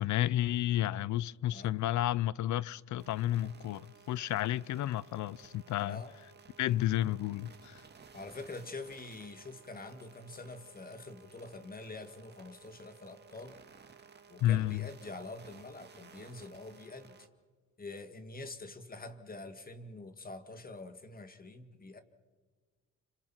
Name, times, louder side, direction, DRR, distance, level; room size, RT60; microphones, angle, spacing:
voice 1, 0.0-6.0 6.6-7.8 14.4-14.9, left 13 dB, 70° left, 0.6 m, -31 dB
sound 1, 3.0-17.3, right 6 dB, 35° right, 1.9 m, -57 dB
voice 2, 5.8-6.1 8.1-13.6 14.3-17.3 17.8-22.0, left 2 dB, 30° left, 2.1 m, -46 dB
30.0 x 26.0 x 4.5 m
cardioid pair, 90°, 30 cm